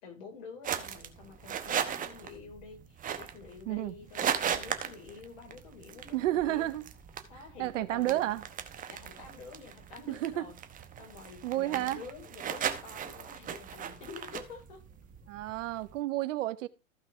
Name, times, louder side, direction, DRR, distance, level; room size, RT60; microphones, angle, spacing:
voice 1, 0.0-6.7 7.3-8.3 8.9-10.6 11.0-14.9, left 5 dB, 60° left, 4.5 m, -48 dB
sound 1, 0.6-16.0, right 8 dB, 20° right, 0.9 m, -38 dB
voice 2, 6.1-6.8 7.6-8.4 10.1-10.4 11.4-12.0 15.3-16.7, right 15 dB, 60° right, 1.0 m, -31 dB
15.0 x 5.2 x 3.3 m
hypercardioid pair, 115°, 42 cm